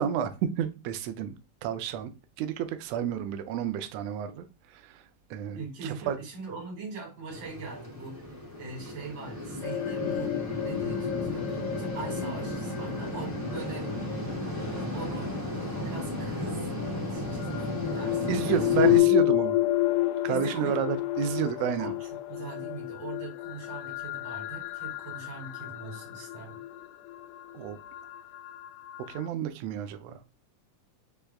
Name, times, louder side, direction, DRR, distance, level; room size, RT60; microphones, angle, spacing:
voice 1, 0.0-1.3 1.6-2.1 2.4-5.0 5.3-6.2 18.3-19.6 20.2-21.9 27.5-27.8 29.1-30.2, right 8 dB, 90° right, 1.4 m, -30 dB
voice 2, 5.5-8.2 8.6-10.4 10.6-13.9 14.9-15.3 15.8-16.7 17.1-18.9 20.3-20.9 21.8-26.6, right 4 dB, 55° right, 3.1 m, -42 dB
sound 1, 7.3-19.0, left 1 dB, 25° left, 0.4 m, -34 dB
sound 2, 9.6-15.7 16.8-29.2, left 16 dB, 85° left, 2.0 m, -30 dB
6.2 x 3.4 x 2.2 m
omnidirectional pair, 3.5 m